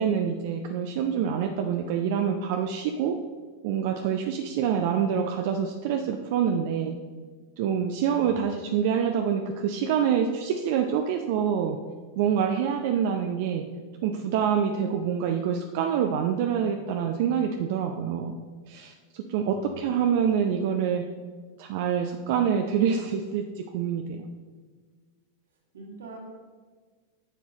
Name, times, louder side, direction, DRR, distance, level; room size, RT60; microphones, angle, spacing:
voice 1, 0.0-3.1 3.6-7.0 7.6-11.8 12.2-13.6 14.0-18.3 18.7-21.0 21.6-24.3, right 8 dB, 55° right, 4 dB, 0.5 m, -26 dB
voice 2, 19.5-19.8 25.7-26.2, right 2 dB, 70° right, -1 dB, 2.0 m, -44 dB
9.9 x 7.1 x 3.0 m, 1.5 s
figure-of-eight pair, 90°, 0 cm